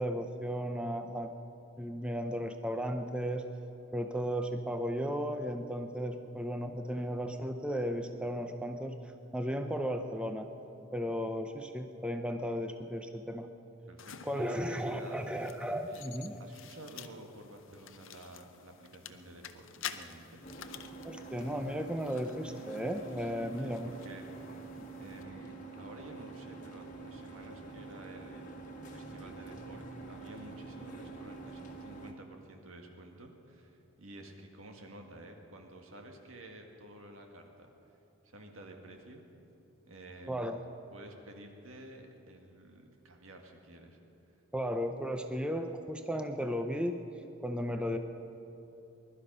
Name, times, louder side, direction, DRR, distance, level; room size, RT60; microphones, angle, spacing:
voice 1, 0.0-1.4 1.8-3.5 3.9-9.0 9.3-10.5 10.9-13.5 14.2-16.4 21.0-23.9 40.3-40.6 44.5-47.0 47.4-48.0, equal, 5° right, 6 dB, 0.5 m, -35 dB
voice 2, 13.9-15.3 15.9-16.1 16.4-20.4 23.2-24.3 25.0-28.4 28.8-37.7 38.2-39.2 39.8-40.5 40.9-44.0, right 1 dB, 75° right, 3 dB, 1.8 m, -51 dB
sound 1, 14.0-25.2, left 9 dB, 65° left, 0.6 m, -50 dB
sound 2, 20.4-32.1, right 3 dB, 35° left, 1.5 m, -46 dB
21.0 x 12.0 x 5.4 m, 2.9 s
head